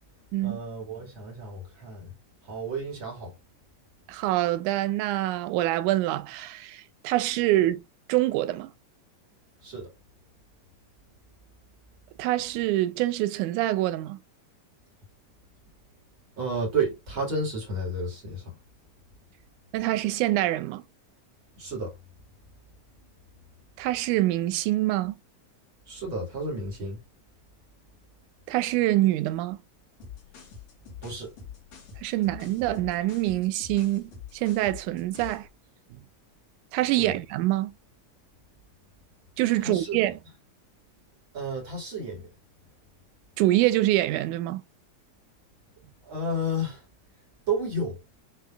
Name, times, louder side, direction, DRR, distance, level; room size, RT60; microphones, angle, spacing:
voice 1, 0.4-2.1 2.4-3.3 9.6-9.9 16.4-18.6 21.6-21.9 25.9-27.0 31.0-31.3 37.0-37.1 39.6-40.0 41.3-42.3 46.0-46.9 47.5-48.0, right 1 dB, 45° right, 2.3 m, -31 dB
voice 2, 4.1-7.8 8.1-8.7 12.2-14.2 19.7-20.8 23.8-25.1 28.5-29.6 32.0-35.5 36.7-37.7 39.4-40.1 43.4-44.6, right 16 dB, 80° right, 1.9 m, -25 dB
sound 1, 30.0-35.5, left 7 dB, 55° left, 2.9 m, -45 dB
7.5 x 3.0 x 2.3 m
omnidirectional pair, 3.7 m